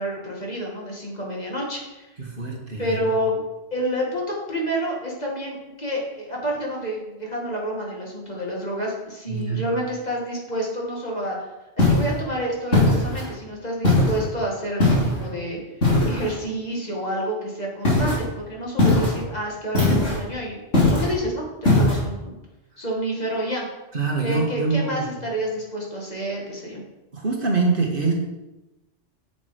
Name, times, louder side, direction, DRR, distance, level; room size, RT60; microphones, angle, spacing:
voice 1, 0.0-2.1 2.8-3.4 3.7-11.4 11.8-15.6 16.0-20.6 20.9-22.4 22.8-23.6 24.2-26.8, equal, 35° left, -3 dB, 2.1 m, -29 dB
voice 2, 2.2-3.0 9.3-9.6 23.9-25.1 27.1-28.1, right 4 dB, 50° right, -1 dB, 1.7 m, -24 dB
sound 1, 11.8-12.2 12.7-13.3 13.8-14.2 14.8-15.2 15.8-16.3 17.8-18.2 18.8-19.2 19.7-20.2 20.7-21.2 21.6-22.0, left 2 dB, 80° left, 3.6 m, -19 dB
7.7 x 7.2 x 5.0 m, 1.0 s
omnidirectional pair, 1.2 m